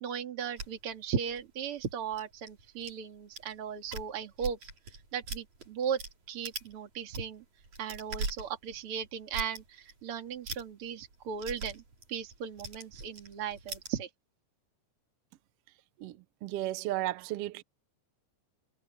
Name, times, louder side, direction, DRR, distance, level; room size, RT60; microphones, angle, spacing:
voice 1, 0.0-4.6 5.1-6.0 6.3-7.4 7.8-11.8 12.1-14.1, right 7 dB, 45° right, 2.8 m, -37 dB
sound 1, 0.6-2.9 3.4-3.5 3.8-6.1 6.4-6.7 7.0-13.9, right 3 dB, 65° right, 7.3 m, -41 dB
voice 2, 16.0-17.6, right 15 dB, 80° right, 1.3 m, -34 dB
omnidirectional pair, 3.7 m